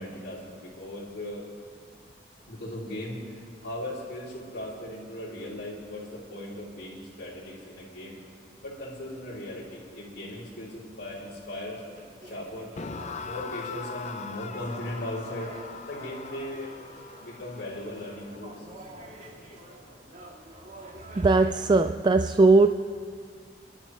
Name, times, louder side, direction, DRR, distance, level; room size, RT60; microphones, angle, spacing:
voice 1, 0.0-1.4 2.5-8.2 8.6-11.8 12.2-12.7 13.2-15.5 15.9-16.8 17.2-18.6, left 1 dB, 65° left, -9 dB, 3.4 m, -38 dB
sound 1, 11.9-21.8, right 1 dB, 45° right, 1.9 m, -48 dB
sound 2, 12.8-19.9, left 5 dB, 40° left, 0.5 m, -42 dB
voice 2, 21.1-22.7, right 3 dB, 25° right, 8 dB, 0.3 m, -19 dB
28.0 x 12.0 x 3.2 m, 2.1 s
head